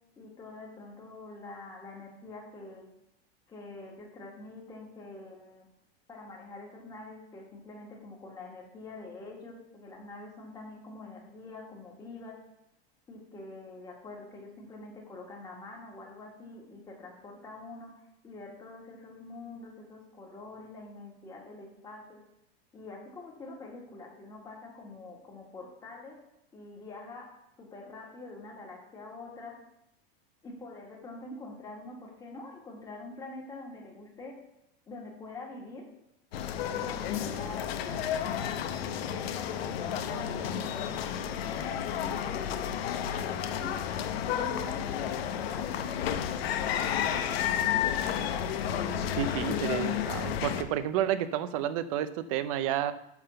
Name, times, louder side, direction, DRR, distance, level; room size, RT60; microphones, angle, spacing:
voice 1, 0.2-2.9 3.5-5.7 6.1-12.4 13.1-22.2 22.7-26.2 26.5-29.6 30.4-34.3 34.9-35.9 36.5-38.2 38.5-42.4 43.1-45.7 47.1-48.4, left 2 dB, 10° left, -1 dB, 1.5 m, -45 dB
sound 1, 36.3-50.6, left 9 dB, 80° left, 0.9 m, -31 dB
voice 2, 49.2-52.9, right 11 dB, 35° right, 13 dB, 0.4 m, -30 dB
10.5 x 3.6 x 6.8 m, 0.82 s
supercardioid pair, 175°, 30 cm